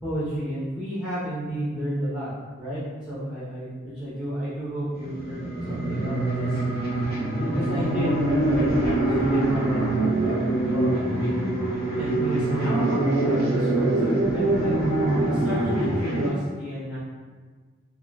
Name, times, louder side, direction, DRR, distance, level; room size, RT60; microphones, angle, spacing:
voice 1, 0.0-2.3 2.6-5.4 5.7-6.8 7.4-10.0 10.6-11.5 12.0-14.7 15.2-17.0, equal, 5° right, -10 dB, 0.7 m, -31 dB
sound 1, 5.0-16.3, right 2 dB, 30° right, 0.9 m, -24 dB
3.6 x 2.2 x 2.2 m, 1.5 s
head